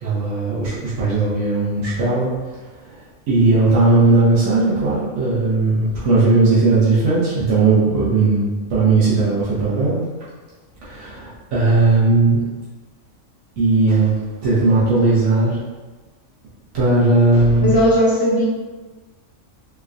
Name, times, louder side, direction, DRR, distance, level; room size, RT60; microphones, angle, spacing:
voice 1, 0.0-2.3 3.3-8.4 8.7-10.0 10.9-12.4 13.6-14.1 14.4-15.5 16.7-17.7, right 3 dB, 75° right, -9 dB, 1.3 m, -17 dB
voice 2, 17.6-18.5, equal, 25° left, -5 dB, 0.5 m, -16 dB
3.6 x 3.3 x 2.5 m, 1.3 s
omnidirectional pair, 1.4 m